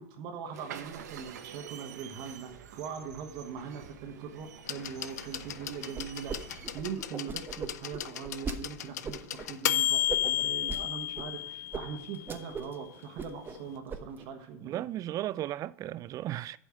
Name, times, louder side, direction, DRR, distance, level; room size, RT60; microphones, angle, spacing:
voice 1, 0.0-14.9, right 6 dB, 55° right, 1.4 m, -41 dB
sound 1, 0.5-7.0, right 9 dB, 85° right, 0.8 m, -48 dB
sound 2, 4.7-12.4 13.6-13.7, left 13 dB, 80° left, 0.5 m, -33 dB
sound 3, 5.9-6.4 6.6-8.6 9.0-9.5 10.1-10.8 11.2-11.3 11.7-11.8 12.1-12.8 13.0-13.6 13.9-14.3, right 5 dB, 25° right, 0.9 m, -38 dB
voice 2, 14.6-16.6, right 13 dB, 40° right, 0.4 m, -35 dB
8.5 x 5.3 x 6.2 m
hypercardioid pair, 95°, 9 cm